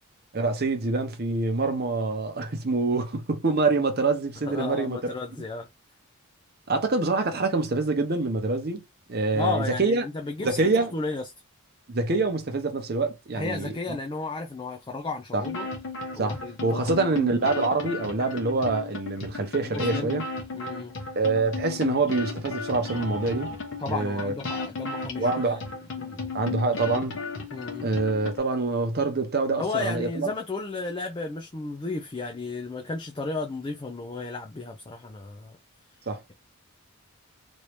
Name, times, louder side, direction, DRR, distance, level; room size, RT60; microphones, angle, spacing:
voice 1, 0.3-5.1 6.7-8.8 9.1-10.0 10.4-10.9 11.9-13.7 15.3-15.4 16.2-20.2 21.2-23.5 23.9-24.3 25.2-25.6 26.3-27.2 27.8-30.3 36.1-36.2, right 3 dB, 45° right, 0.8 m, -25 dB
voice 2, 4.4-5.7 9.3-11.3 13.3-15.7 16.1-17.0 19.6-20.2 20.5-20.9 23.8-26.3 27.5-27.9 29.6-35.6, left 3 dB, 20° left, 0.4 m, -33 dB
sound 1, 15.4-28.4, left 3 dB, 55° left, 1.0 m, -35 dB
3.1 x 2.7 x 3.2 m
head